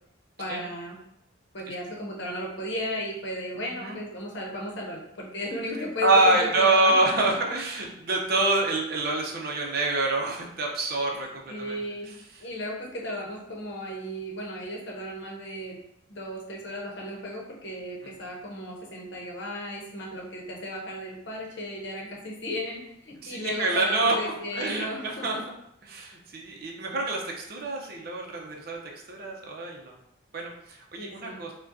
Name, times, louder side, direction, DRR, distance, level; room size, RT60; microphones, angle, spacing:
voice 1, 0.4-1.0 1.5-7.5 11.5-12.1 12.4-15.8 16.1-25.4 31.0-31.4, left 1 dB, 65° left, -1 dB, 0.8 m, -35 dB
voice 2, 3.6-4.0 6.0-11.8 23.2-24.2 24.5-25.4 25.8-28.8 29.1-29.9 30.3-31.5, right 2 dB, 50° right, 0 dB, 0.6 m, -26 dB
4.9 x 2.2 x 2.6 m, 0.78 s
head